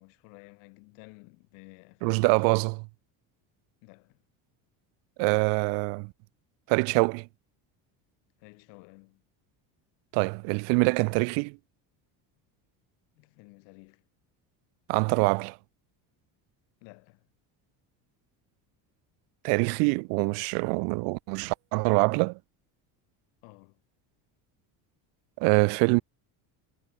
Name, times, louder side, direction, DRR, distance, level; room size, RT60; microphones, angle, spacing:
voice 1, 0.0-2.5 3.8-4.2 8.4-9.2 13.1-14.0 16.8-17.3 23.4-23.8, left 37 dB, 85° left, 2.8 m, -53 dB
voice 2, 2.0-2.9 5.2-6.1 6.7-7.3 10.1-11.6 14.9-15.6 19.4-22.4 25.4-26.0, right 37 dB, 75° right, 0.6 m, -25 dB
cardioid pair, 175°, 42 cm